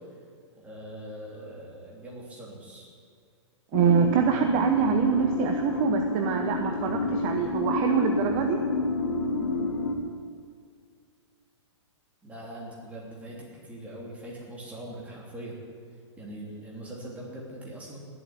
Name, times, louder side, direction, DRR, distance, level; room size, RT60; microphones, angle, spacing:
voice 1, 0.6-2.9 6.6-7.5 12.2-15.5 16.2-18.0, right 1 dB, 10° right, -4 dB, 3.2 m, -42 dB
sound 1, 3.7-10.0, left 3 dB, 60° left, 2.2 m, -29 dB
voice 2, 3.7-8.6, right 7 dB, 30° right, 4 dB, 1.0 m, -25 dB
18.5 x 8.0 x 9.2 m, 2.2 s
hypercardioid pair, 160°, 16 cm